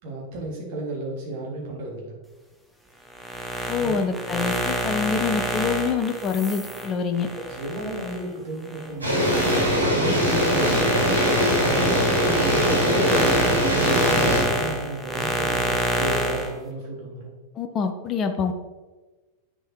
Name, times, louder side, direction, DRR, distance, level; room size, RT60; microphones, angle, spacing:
voice 1, 0.0-2.2 3.8-4.0 7.1-11.1 12.3-17.3, right 1 dB, 50° right, -2 dB, 3.3 m, -33 dB
sound 1, 3.1-8.2 8.7-16.5, equal, ahead, 1.3 m, -27 dB
voice 2, 3.7-7.3 17.5-18.5, left 5 dB, 30° left, 7 dB, 1.0 m, -26 dB
sound 2, 9.0-14.4, equal, 80° right, 3.2 m, -21 dB
8.7 x 6.7 x 4.6 m, 1.2 s
figure-of-eight pair, 90°, 0 cm